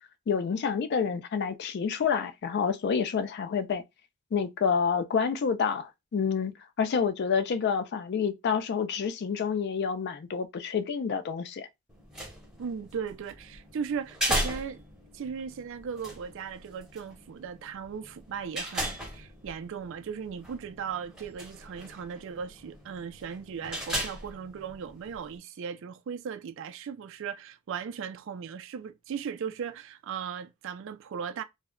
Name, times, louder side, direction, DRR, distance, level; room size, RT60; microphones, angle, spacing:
voice 1, 0.3-3.8 4.3-6.5 6.8-11.7, left 6 dB, 50° left, 0.3 m, -28 dB
sound 1, 11.9-25.4, equal, 5° right, 0.7 m, -38 dB
voice 2, 12.6-14.8 15.1-31.4, right 7 dB, 60° right, 0.3 m, -37 dB
2.1 x 2.0 x 3.6 m
head